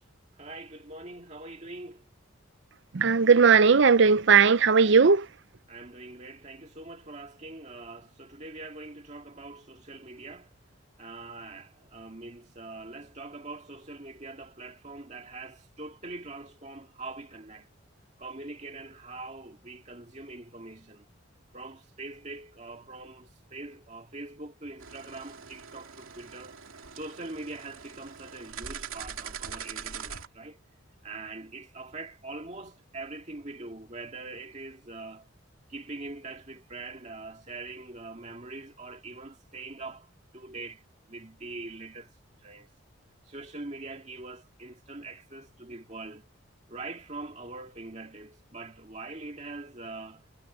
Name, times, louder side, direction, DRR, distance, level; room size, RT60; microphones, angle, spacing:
voice 1, 0.3-2.0 5.7-10.5 11.0-17.7 18.2-21.1 21.5-26.6 26.9-30.6 31.0-35.3 35.7-42.7 43.2-46.3 46.7-50.2, right 2 dB, 35° right, 2.2 m, -43 dB
voice 2, 2.9-5.3, right 5 dB, 60° right, 0.6 m, -18 dB
sound 1, 24.8-30.3, right 7 dB, 90° right, 2.6 m, -42 dB
head